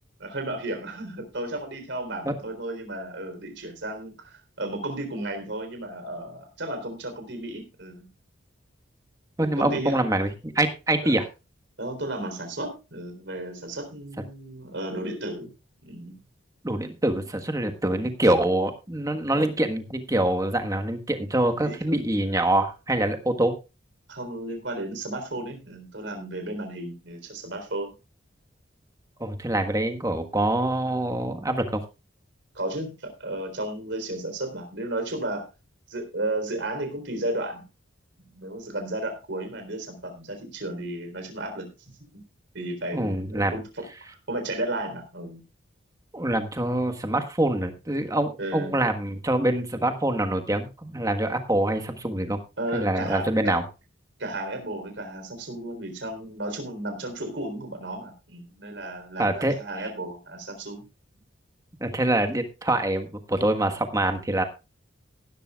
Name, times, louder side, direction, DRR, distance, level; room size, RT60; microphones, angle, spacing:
voice 1, 0.2-8.1 9.4-10.0 11.0-11.1 11.8-15.5 15.8-16.2 21.5-21.8 24.1-27.9 32.5-35.5 35.9-37.7 38.2-42.2 42.5-45.4 48.4-48.7 52.6-53.6 54.2-60.9, right 1 dB, 65° right, 5 dB, 3.7 m, -34 dB
voice 2, 9.4-11.2 16.6-23.6 29.2-31.8 42.9-43.5 46.1-52.4 52.7-53.6 59.2-59.5 61.8-64.4, right 1 dB, 15° right, 6 dB, 1.4 m, -25 dB
16.5 x 12.0 x 2.4 m, 0.28 s
head